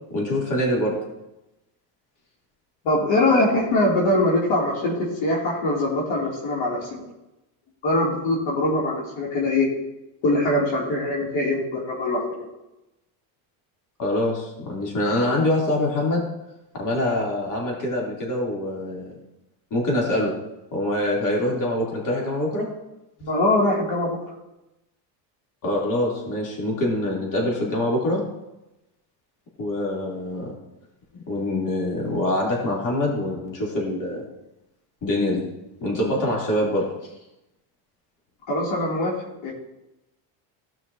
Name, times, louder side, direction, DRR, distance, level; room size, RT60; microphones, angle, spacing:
voice 1, 0.1-1.0 14.0-16.2 16.7-19.2 19.7-20.4 20.7-22.7 25.6-28.2 29.6-30.6 31.3-34.2 35.0-35.5 35.8-36.9, left 1 dB, 40° left, -3 dB, 3.1 m, -24 dB
voice 2, 2.8-7.0 7.8-9.7 10.2-12.4 23.2-24.2 38.5-39.2 39.4-39.5, left 1 dB, 70° left, -4 dB, 2.8 m, -22 dB
16.0 x 5.8 x 2.8 m, 0.95 s
cardioid pair, 130°, 47 cm